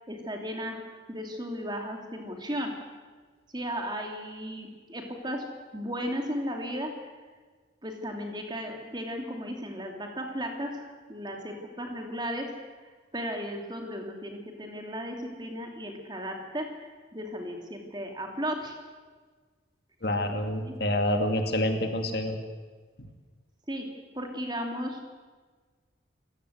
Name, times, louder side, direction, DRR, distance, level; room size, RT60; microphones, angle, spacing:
voice 1, 0.1-0.8 1.1-2.7 3.5-5.5 5.7-6.9 7.8-12.5 13.1-18.8 20.6-20.7 23.7-23.9 24.1-25.1, equal, 25° right, 3 dB, 2.9 m, -35 dB
voice 2, 20.0-22.4 23.0-23.1, left 1 dB, 55° left, 5 dB, 2.4 m, -27 dB
27.5 x 16.0 x 8.2 m, 1.4 s
head